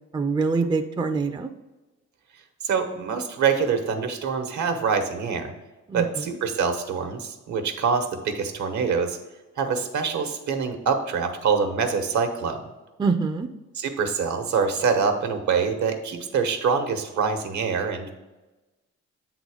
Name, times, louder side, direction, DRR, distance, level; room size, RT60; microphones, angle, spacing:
voice 1, 0.1-1.5 5.9-6.1 13.0-13.5, right 4 dB, 15° right, 6 dB, 0.5 m, -24 dB
voice 2, 2.6-5.5 5.9-9.2 9.6-12.6 13.7-18.1, right 5 dB, 70° right, 6 dB, 1.1 m, -25 dB
7.8 x 3.9 x 4.9 m, 1.1 s
cardioid pair, 90°, 30 cm